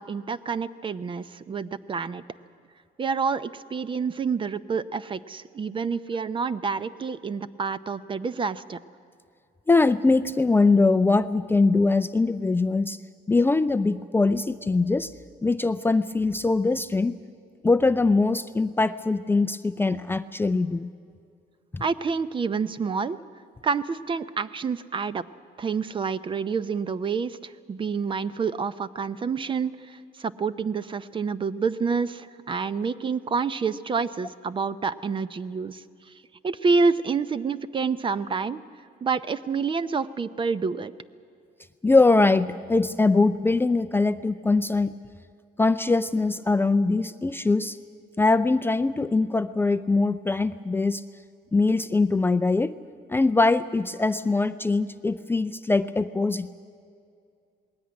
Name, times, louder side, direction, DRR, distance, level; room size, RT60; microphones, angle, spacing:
voice 1, 0.0-2.2 3.0-8.8 21.8-23.2 23.6-25.3 25.6-35.8 36.4-38.6 39.0-40.9, right 5 dB, 30° right, 15 dB, 0.6 m, -28 dB
voice 2, 9.7-13.0 13.3-15.1 15.4-17.2 17.6-20.9 21.7-21.8 41.8-44.9 45.6-47.8 48.2-51.0 51.5-52.8 53.1-56.5, left 3 dB, 15° left, 9 dB, 0.4 m, -22 dB
20.0 x 16.5 x 9.6 m, 2.3 s
cardioid pair, 110°, 17 cm